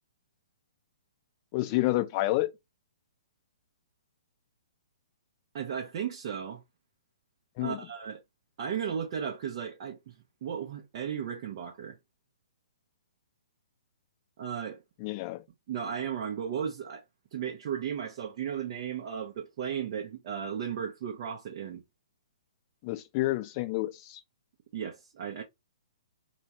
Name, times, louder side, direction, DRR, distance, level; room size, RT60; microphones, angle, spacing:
voice 1, 1.5-2.5 7.6-7.8 15.0-15.4 22.8-24.2, left 18 dB, 35° left, 0.5 m, -29 dB
voice 2, 5.5-6.6 7.6-8.2 8.6-10.1 10.4-12.0 14.4-14.8 15.7-17.0 17.3-21.8 24.7-25.4, right 8 dB, 45° right, 0.7 m, -35 dB
3.0 x 2.2 x 2.9 m
figure-of-eight pair, 125°, 3 cm